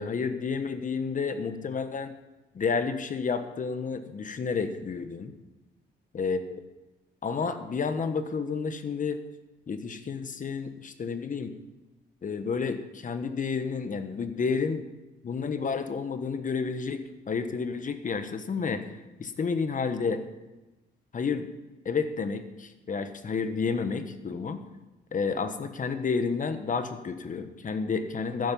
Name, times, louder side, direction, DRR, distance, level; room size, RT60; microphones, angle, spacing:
voice 1, 0.0-2.1 2.5-5.3 6.1-6.4 7.2-9.2 9.7-11.5 12.2-14.9 15.2-18.9 19.2-20.2 21.1-21.5 21.8-24.6 25.1-28.5, left 5 dB, 40° left, 9 dB, 1.3 m, -30 dB
13.0 x 10.5 x 5.5 m, 1.1 s
cardioid pair, 90°, 20 cm